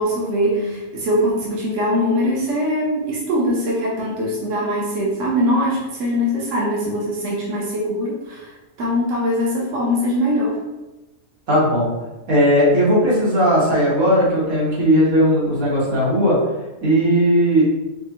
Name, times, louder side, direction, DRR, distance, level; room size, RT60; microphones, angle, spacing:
voice 1, 0.0-8.5 8.8-10.6, equal, 65° right, -4 dB, 1.1 m, -22 dB
voice 2, 11.5-11.9 12.3-16.4 16.8-17.6, equal, 90° right, -7 dB, 2.0 m, -17 dB
5.2 x 2.5 x 2.9 m, 1.1 s
omnidirectional pair, 1.4 m